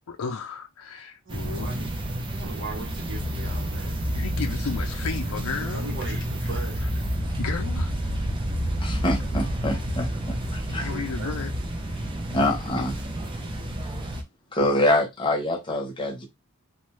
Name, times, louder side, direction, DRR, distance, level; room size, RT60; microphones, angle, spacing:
voice 1, 0.1-1.7 4.1-6.9 7.4-7.9 10.8-11.5, left 5 dB, 85° left, 0.5 m, -34 dB
sound 1, 1.3-14.2, equal, 25° right, 0.5 m, -29 dB
voice 2, 1.3-2.0 2.3-3.9 5.6-6.8 10.7-11.4, right 3 dB, 60° right, 0.9 m, -39 dB
voice 3, 8.8-10.9 12.3-12.9 14.5-16.3, left 1 dB, 25° left, 0.8 m, -25 dB
2.6 x 2.2 x 3.1 m
head